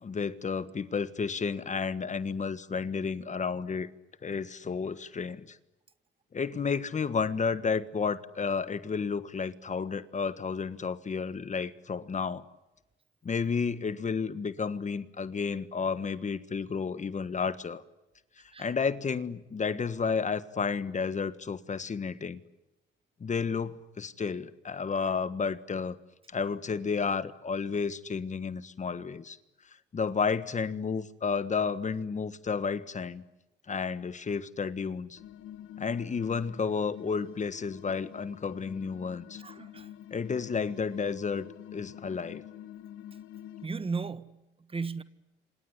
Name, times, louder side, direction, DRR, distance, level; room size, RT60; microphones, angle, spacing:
voice 1, 0.0-3.9 4.2-5.6 6.3-12.4 13.2-17.8 18.6-22.4 23.2-26.0 26.3-29.4 29.9-33.2 33.7-35.2 35.8-39.4 40.1-41.5 41.7-42.4, left 5 dB, 35° left, 13 dB, 1.5 m, -31 dB
sound 1, 35.2-43.7, left 11 dB, 85° left, 1.7 m, -47 dB
voice 2, 39.3-39.9 43.6-45.0, right 4 dB, 30° right, 13 dB, 1.5 m, -36 dB
27.0 x 27.0 x 8.2 m, 0.97 s
cardioid pair, 90°, 20 cm